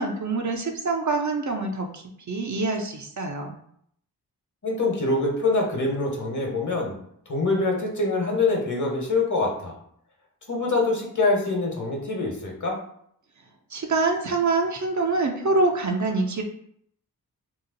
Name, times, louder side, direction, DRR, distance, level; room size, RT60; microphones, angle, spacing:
voice 1, 0.0-2.0 2.3-3.6 13.7-16.4, right 3 dB, 50° right, 2 dB, 0.6 m, -25 dB
voice 2, 4.6-6.9 7.3-9.7 10.5-12.8, left 3 dB, 50° left, -1 dB, 1.2 m, -24 dB
2.9 x 2.0 x 3.8 m, 0.67 s
cardioid pair, 45°, 39 cm